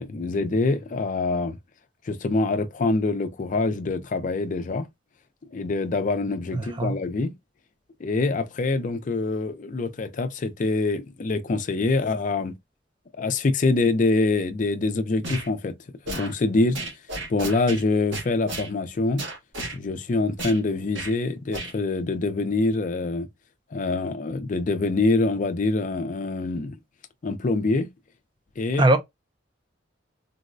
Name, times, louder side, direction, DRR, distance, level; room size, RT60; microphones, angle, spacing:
voice 1, 0.0-1.6 2.0-4.9 5.5-7.3 8.0-12.5 13.2-15.7 16.1-16.8 17.3-19.2 19.7-23.3 23.7-26.8 27.2-27.9 28.6-28.9, left 3 dB, 45° left, 0.4 m, -25 dB
voice 2, 6.5-7.0 28.8-29.0, right 2 dB, 25° right, 0.4 m, -20 dB
sound 1, 15.2-15.5 16.1-16.3 16.7-17.8 18.1-18.7 19.2-19.8 20.4-20.6 20.9-21.1 21.5-21.7, right 2 dB, 85° right, 1.4 m, -33 dB
3.9 x 2.2 x 2.5 m
head